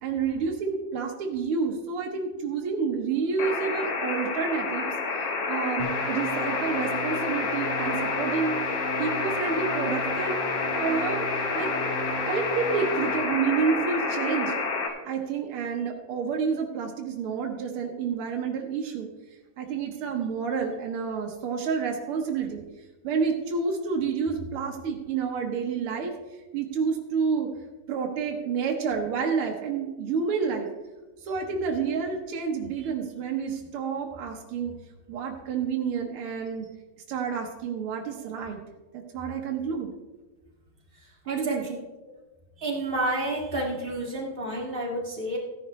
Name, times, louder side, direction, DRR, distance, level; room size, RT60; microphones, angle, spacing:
voice 1, 0.0-4.9 5.2-8.5 9.0-10.4 10.7-11.7 12.3-14.6 15.0-19.1 19.6-22.6 23.0-26.1 26.5-27.5 27.9-30.7 31.2-34.7 35.1-36.7 37.1-38.6 38.9-39.9 41.3-41.8, right 5 dB, 80° right, 1 dB, 1.2 m, -29 dB
sound 1, 3.4-14.9, left 4 dB, 60° left, 1.7 m, -29 dB
sound 2, 5.8-13.4, left 1 dB, 90° left, 3.1 m, -37 dB
voice 2, 42.6-45.4, right 1 dB, 25° right, -3 dB, 1.1 m, -30 dB
15.0 x 10.5 x 3.2 m, 1.2 s
omnidirectional pair, 4.0 m